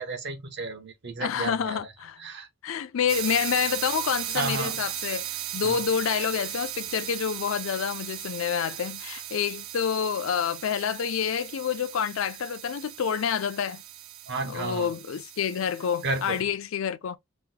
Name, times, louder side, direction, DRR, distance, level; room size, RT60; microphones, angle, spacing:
voice 1, 0.0-1.8 2.2-2.5 4.3-4.8 5.6-5.8 14.3-14.9 16.0-16.4, right 3 dB, 60° right, 0.8 m, -32 dB
voice 2, 1.2-2.2 2.6-13.8 14.4-17.2, left 7 dB, 80° left, 0.4 m, -28 dB
sound 1, 3.1-16.4, right 13 dB, 85° right, 0.4 m, -37 dB
3.0 x 2.1 x 3.7 m
head